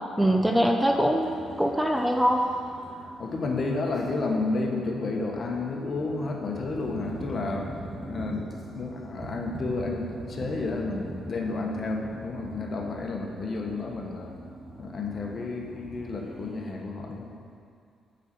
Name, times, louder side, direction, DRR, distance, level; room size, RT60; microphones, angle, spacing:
voice 1, 0.2-2.4, equal, 5° right, 2 dB, 0.6 m, -23 dB
sound 1, 0.8-16.7, right 1 dB, 25° right, 1.9 m, -42 dB
voice 2, 3.2-7.7 8.1-14.3 14.8-17.3, left 3 dB, 45° left, 1 dB, 1.3 m, -31 dB
8.3 x 5.4 x 6.9 m, 2.3 s
cardioid pair, 90°, 0 cm